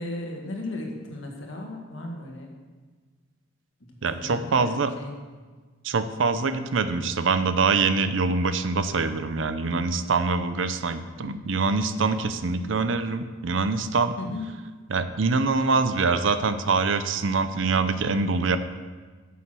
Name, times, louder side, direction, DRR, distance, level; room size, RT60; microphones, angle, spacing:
voice 1, 0.0-2.5 4.1-5.2 14.2-14.4, left 2 dB, 70° left, 0 dB, 1.8 m, -35 dB
voice 2, 4.0-4.9 5.8-14.1 14.9-18.6, right 4 dB, 70° right, 11 dB, 0.6 m, -24 dB
9.1 x 7.1 x 6.2 m, 1.4 s
head